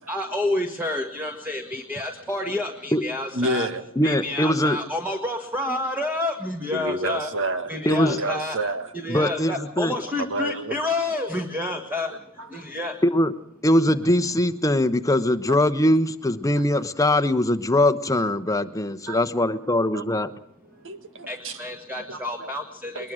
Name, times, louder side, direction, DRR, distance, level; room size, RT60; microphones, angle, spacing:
voice 1, 0.1-3.7 4.0-7.3 7.7-8.6 8.9-12.1 12.5-12.9 21.3-23.1, left 2 dB, 10° right, 3 dB, 1.7 m, -29 dB
voice 2, 3.3-3.8 6.7-8.9 10.2-10.8 12.4-12.7 15.5-15.6 19.1-19.3 19.9-20.0 20.8-21.6 22.1-22.5 23.0-23.1, right 1 dB, 60° right, 9 dB, 1.8 m, -29 dB
voice 3, 4.0-4.8 7.9-8.2 9.1-10.0 13.0-13.3 13.6-20.3, left 1 dB, 15° left, 11 dB, 1.0 m, -21 dB
21.5 x 21.0 x 6.4 m, 0.73 s
head